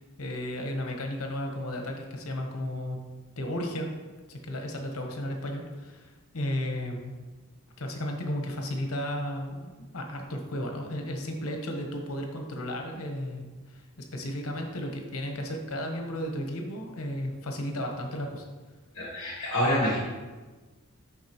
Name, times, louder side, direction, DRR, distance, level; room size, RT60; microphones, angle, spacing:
voice 1, 0.2-3.0 3.4-3.9 4.3-6.1 6.3-7.1 7.8-18.4, left 1 dB, 80° left, 3 dB, 0.9 m, -34 dB
voice 2, 18.9-20.0, equal, 55° left, -7 dB, 1.7 m, -26 dB
10.0 x 3.7 x 2.9 m, 1.3 s
head